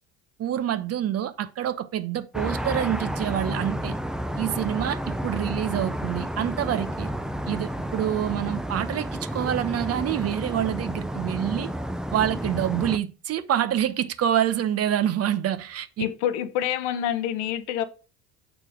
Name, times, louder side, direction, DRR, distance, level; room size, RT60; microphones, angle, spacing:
voice 1, 0.4-4.0 4.4-7.1 7.5-11.7 12.1-16.0, right 10 dB, 45° right, 1.0 m, -27 dB
sound 1, 2.3-13.0, equal, ahead, 0.6 m, -31 dB
voice 2, 16.0-17.8, left 10 dB, 75° left, 0.9 m, -27 dB
7.0 x 4.4 x 5.0 m
hypercardioid pair, 70°, 35 cm